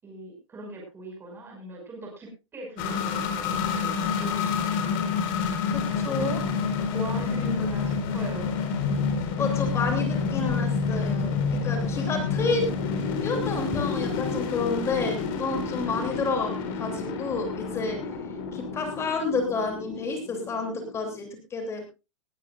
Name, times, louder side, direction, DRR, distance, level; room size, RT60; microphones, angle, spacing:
voice 1, 0.0-4.9 6.0-6.7 6.9-8.5, right 1 dB, 15° right, 0 dB, 5.8 m, -39 dB
sound 1, 2.8-21.3, left 5 dB, 40° left, 4.3 m, -28 dB
voice 2, 5.7-6.4 9.4-12.7 13.2-18.0 18.5-21.9, left 4 dB, 15° left, 3 dB, 2.9 m, -30 dB
19.0 x 14.0 x 2.5 m, 0.28 s
supercardioid pair, 155°, 16 cm